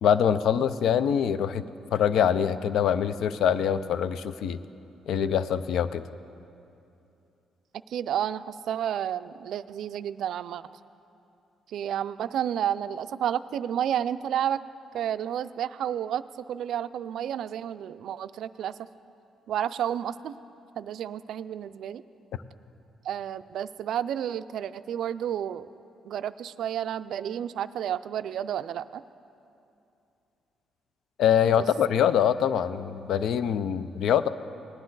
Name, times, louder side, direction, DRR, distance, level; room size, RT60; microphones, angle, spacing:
voice 1, 0.0-1.6 1.9-4.6 5.1-6.0 31.2-34.3, left 8 dB, 75° left, 14 dB, 0.4 m, -24 dB
voice 2, 7.9-10.6 11.7-14.6 14.9-18.8 19.5-20.3 20.8-22.0 23.0-25.7 26.1-29.0 31.5-31.6, right 10 dB, 75° right, 14 dB, 0.3 m, -31 dB
19.0 x 9.7 x 3.9 m, 2.7 s
cardioid pair, 90°, 0 cm